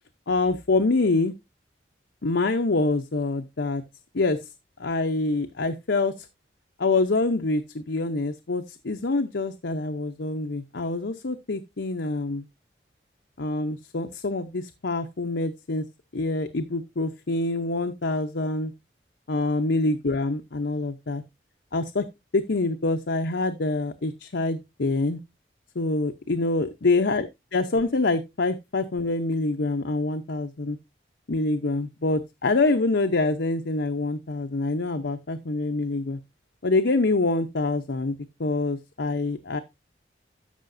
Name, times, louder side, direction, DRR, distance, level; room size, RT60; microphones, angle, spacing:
voice 1, 0.3-1.3 2.2-3.8 4.1-4.4 4.8-6.3 6.8-12.5 13.4-15.8 16.1-18.7 19.3-21.2 21.7-22.1 22.3-25.2 25.7-30.8 31.3-36.2 36.6-38.1 38.4-39.6, left 2 dB, 75° left, 0.8 m, -25 dB
13.5 x 5.7 x 2.6 m
head